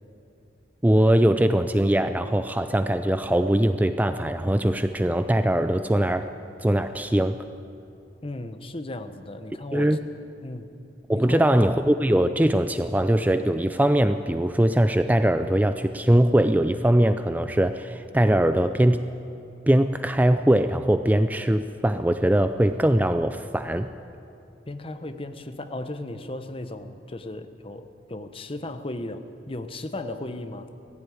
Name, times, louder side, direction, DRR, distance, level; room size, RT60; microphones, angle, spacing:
voice 1, 0.8-6.3 6.6-7.5 9.7-10.0 11.1-19.1 19.7-23.9, right 1 dB, 10° right, 10 dB, 0.4 m, -21 dB
voice 2, 8.2-9.9 10.4-10.7 11.1-11.5 24.7-30.7, left 2 dB, 30° left, 9 dB, 1.0 m, -35 dB
18.5 x 15.0 x 9.4 m, 2.7 s
head